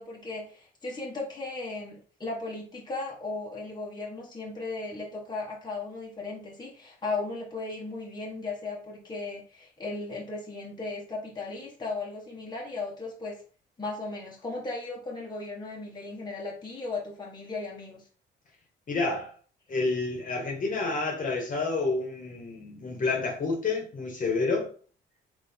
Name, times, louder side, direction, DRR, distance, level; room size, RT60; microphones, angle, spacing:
voice 1, 0.0-13.4 13.8-18.0, left 3 dB, 20° left, 1.5 m, -36 dB
voice 2, 18.9-19.3 19.7-24.7, left 3 dB, 40° left, 1.6 m, -29 dB
3.8 x 3.6 x 3.7 m
cardioid pair, 90°, 20 cm